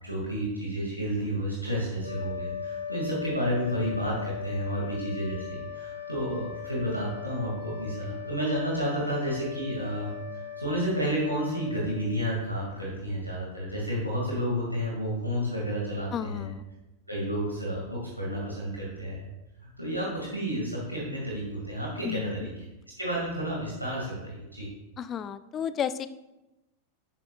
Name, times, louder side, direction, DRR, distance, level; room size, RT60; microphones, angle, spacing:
voice 1, 0.0-16.5 17.1-19.3 19.8-22.5 23.0-24.7, equal, 90° right, -5 dB, 2.4 m, -31 dB
sound 1, 1.9-12.6, left 8 dB, 90° left, 1.4 m, -39 dB
voice 2, 16.1-16.6 22.0-22.3 25.0-26.1, left 8 dB, 25° left, 13 dB, 0.5 m, -32 dB
13.0 x 9.4 x 2.5 m, 0.98 s
figure-of-eight pair, 90°, 0 cm